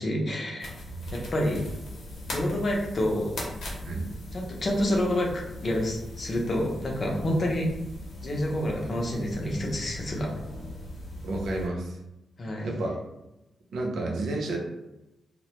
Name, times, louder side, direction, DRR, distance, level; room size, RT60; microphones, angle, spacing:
voice 1, 0.0-0.7 1.1-1.7 2.3-3.4 4.3-7.7 8.2-10.3 12.4-12.7, left 1 dB, 35° left, -1 dB, 0.5 m, -28 dB
sound 1, 0.6-11.7, left 1 dB, 85° left, 0.7 m, -40 dB
voice 2, 11.2-12.0 12.6-13.0 13.7-14.7, right 2 dB, 85° right, -1 dB, 0.5 m, -30 dB
2.2 x 2.0 x 2.8 m, 0.94 s
wide cardioid pair, 165°, 0 cm